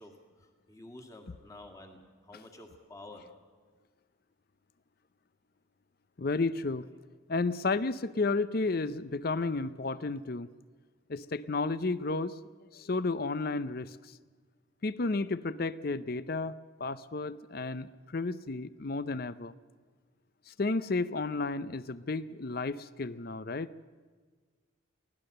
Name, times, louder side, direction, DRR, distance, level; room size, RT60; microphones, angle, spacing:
voice 1, 0.0-3.3, left 2 dB, 15° left, 4 dB, 2.1 m, -50 dB
voice 2, 6.2-6.9 7.3-10.5 11.1-12.3 12.7-14.0 14.8-19.5 20.5-23.7, left 3 dB, 45° left, 16 dB, 0.6 m, -32 dB
23.5 x 16.5 x 6.7 m, 1.5 s
head